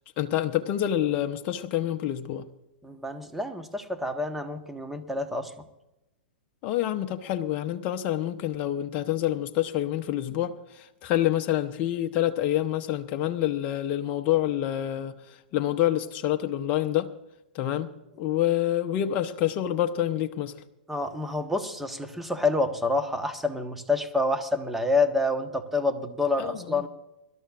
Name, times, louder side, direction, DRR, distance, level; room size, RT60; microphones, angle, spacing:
voice 1, 0.2-2.5 6.6-17.1 17.5-20.5 26.4-26.9, left 12 dB, 35° left, 0.8 m, -27 dB
voice 2, 2.8-5.7 20.9-26.9, left 2 dB, 5° right, 1.3 m, -28 dB
24.0 x 12.5 x 2.5 m
hypercardioid pair, 115°, 5 cm